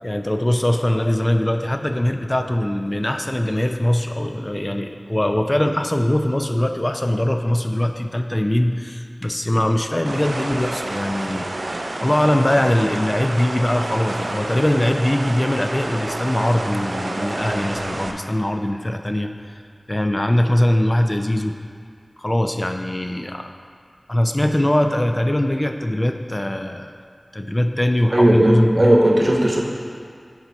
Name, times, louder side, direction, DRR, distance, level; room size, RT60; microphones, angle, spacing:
voice 1, 0.0-19.3 19.9-21.6 22.2-23.5 24.1-26.9 27.3-29.0, left 1 dB, 30° left, 5 dB, 0.3 m, -21 dB
sound 1, 10.1-18.1, right 2 dB, 80° right, 0.4 m, -29 dB
voice 2, 28.1-29.6, right 1 dB, 55° right, -1 dB, 0.9 m, -16 dB
6.9 x 4.1 x 4.4 m, 2.1 s
wide cardioid pair, 50°, 0 cm